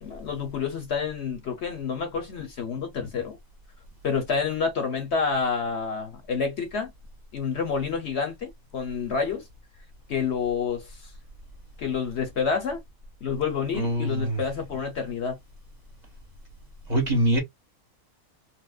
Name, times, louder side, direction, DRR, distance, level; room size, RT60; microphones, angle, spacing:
voice 1, 0.0-3.4 4.0-6.9 7.3-9.5 10.1-11.0 11.8-12.8 13.2-15.4, left 5 dB, 55° left, 1.0 m, -28 dB
voice 2, 13.7-14.4 16.9-17.4, right 1 dB, 35° right, 1.2 m, -23 dB
4.3 x 2.2 x 2.3 m
omnidirectional pair, 1.5 m